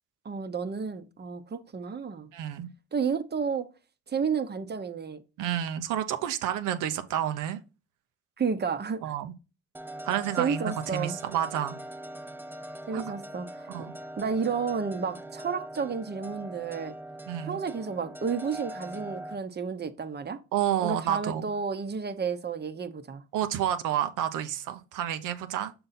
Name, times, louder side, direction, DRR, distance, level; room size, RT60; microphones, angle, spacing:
voice 1, 0.2-2.3 2.9-3.7 4.1-5.2 8.4-9.1 10.4-11.2 12.9-13.7 14.2-16.9 17.5-20.4 20.8-23.2, right 5 dB, 35° right, 0.8 m, -31 dB
voice 2, 2.3-2.7 5.4-7.6 9.0-9.3 10.0-11.8 12.9-13.0 13.7-13.9 17.3-17.6 20.5-21.5 23.3-25.7, right 10 dB, 90° right, 0.8 m, -30 dB
sound 1, 9.7-19.4, right 1 dB, 5° right, 0.5 m, -42 dB
6.8 x 3.9 x 4.2 m
cardioid pair, 90°, 30 cm